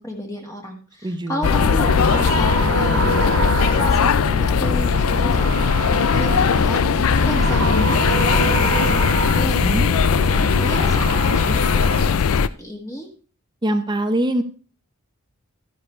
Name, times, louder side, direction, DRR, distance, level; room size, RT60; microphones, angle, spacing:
voice 1, 0.0-13.1, left 1 dB, 15° left, 1 dB, 1.8 m, -32 dB
voice 2, 1.0-1.5 9.6-9.9 13.6-14.4, right 1 dB, 20° right, 10 dB, 0.8 m, -22 dB
sound 1, 1.4-12.5, left 6 dB, 75° left, 0.5 m, -19 dB
sound 2, 1.4-12.1, right 3 dB, 60° right, 1.4 m, -26 dB
12.5 x 9.9 x 3.2 m, 0.38 s
head